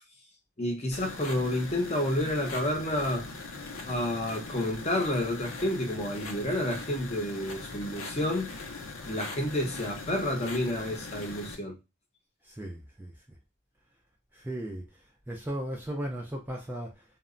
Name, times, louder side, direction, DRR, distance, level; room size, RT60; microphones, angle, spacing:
voice 1, 0.6-3.3 3.8-8.7 9.1-11.8, left 1 dB, 30° left, 0.7 m, -30 dB
sound 1, 0.9-11.6, left 3 dB, 90° left, 0.6 m, -41 dB
voice 2, 12.4-13.1 14.3-14.9 15.3-17.0, right 1 dB, 10° right, 0.4 m, -36 dB
2.1 x 2.0 x 3.6 m
head